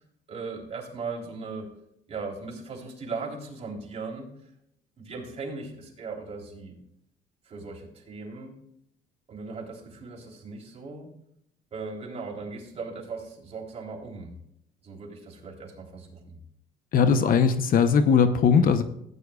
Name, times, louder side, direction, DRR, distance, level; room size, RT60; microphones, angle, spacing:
voice 1, 0.3-1.7 2.1-4.3 5.0-6.7 7.5-8.6 9.3-11.1 11.7-14.3 14.8-16.4 18.5-18.8, right 4 dB, 35° right, -2 dB, 3.4 m, -38 dB
voice 2, 16.9-18.8, left 6 dB, 55° left, 10 dB, 0.8 m, -19 dB
16.5 x 9.4 x 2.4 m, 0.76 s
cardioid pair, 110°, 17 cm